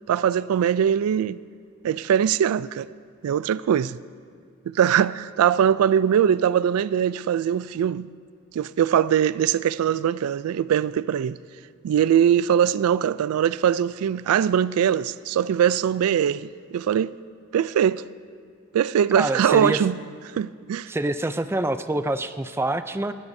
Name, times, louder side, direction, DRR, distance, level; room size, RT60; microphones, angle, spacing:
voice 1, 0.1-1.4 1.8-2.9 3.2-4.0 4.7-8.1 8.5-11.4 11.8-17.1 17.5-18.0 18.7-20.0 20.3-20.9, right 9 dB, 90° right, 0.3 m, -21 dB
voice 2, 19.2-19.8 20.9-23.1, right 2 dB, 10° right, 0.3 m, -26 dB
20.5 x 16.5 x 2.7 m
head